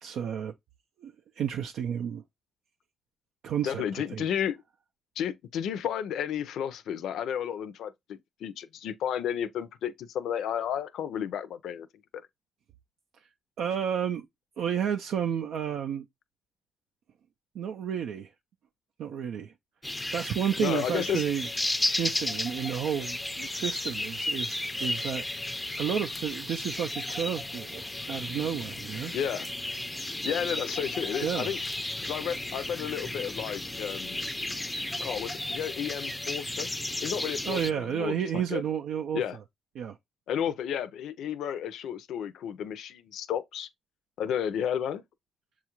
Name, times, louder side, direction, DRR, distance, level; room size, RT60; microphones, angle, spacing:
voice 1, 0.0-0.5 1.0-2.2 3.4-4.3 13.6-14.3 14.6-16.0 17.5-18.3 19.0-19.5 19.9-21.5 22.0-25.2 25.8-29.2 31.2-31.5 37.4-39.2 39.8-40.0, right 8 dB, 75° right, 0.4 m, -31 dB
voice 2, 3.6-4.6 5.2-11.9 12.1-12.2 20.6-21.2 29.1-29.5 30.2-31.6 32.0-34.3 35.0-36.7 37.0-38.6 39.1-39.4 40.3-43.7 44.2-45.0, left 9 dB, 75° left, 0.5 m, -32 dB
sound 1, 19.8-37.7, left 1 dB, 10° left, 0.4 m, -34 dB
7.1 x 2.4 x 2.9 m
cardioid pair, 90°, 0 cm